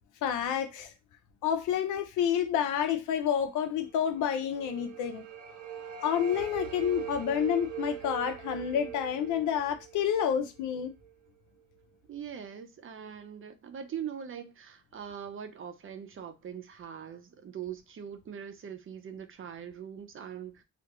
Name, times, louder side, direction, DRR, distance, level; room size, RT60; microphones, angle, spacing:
voice 1, 0.2-0.9 1.4-5.2 6.0-10.9, left 9 dB, 85° left, 0.5 m, -29 dB
sound 1, 4.1-11.1, right 9 dB, 85° right, 0.7 m, -41 dB
voice 2, 12.1-20.6, right 8 dB, 45° right, 0.6 m, -42 dB
2.5 x 2.2 x 2.9 m
cardioid pair, 90°, 30 cm